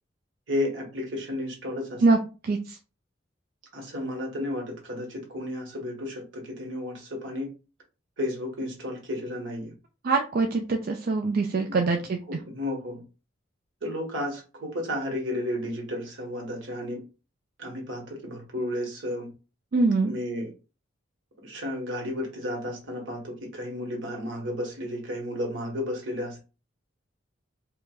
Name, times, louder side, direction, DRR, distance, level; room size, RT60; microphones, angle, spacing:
voice 1, 0.5-2.0 3.7-7.5 8.2-9.7 11.7-11.8 12.3-13.0 13.8-17.0 17.6-19.3 20.0-20.5 21.4-26.4, left 1 dB, 75° right, 1.3 m, -33 dB
voice 2, 2.4-2.8 10.0-12.2 19.7-20.1, right 3 dB, 50° right, 0.4 m, -23 dB
4.6 x 2.4 x 2.3 m
head